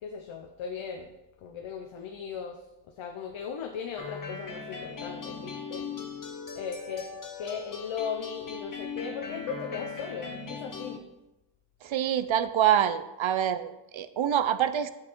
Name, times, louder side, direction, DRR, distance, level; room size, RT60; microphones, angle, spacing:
voice 1, 0.0-1.1 1.4-2.6 3.0-5.9 6.6-7.1 7.4-11.0, left 6 dB, 90° left, 4 dB, 0.8 m, -37 dB
sound 1, 4.0-11.0, left 5 dB, 45° left, 1.2 m, -39 dB
voice 2, 11.8-14.9, right 10 dB, 75° right, 12 dB, 0.7 m, -26 dB
8.6 x 6.8 x 4.5 m, 1.0 s
cardioid pair, 85°, 47 cm